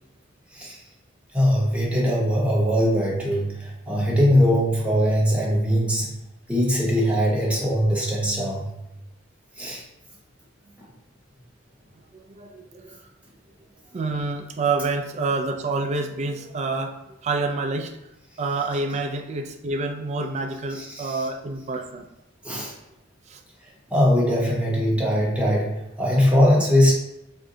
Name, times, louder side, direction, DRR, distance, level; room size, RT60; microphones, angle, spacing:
voice 1, 1.3-6.1 6.5-8.8 9.6-9.8 20.7-21.2 22.4-22.7 23.9-26.9, equal, 5° right, -4 dB, 0.8 m, -21 dB
voice 2, 12.1-13.0 13.9-16.9 17.2-17.9 18.4-22.1 23.3-23.4 25.0-25.3, right 3 dB, 35° right, 4 dB, 0.3 m, -28 dB
2.6 x 2.2 x 3.7 m, 0.92 s
head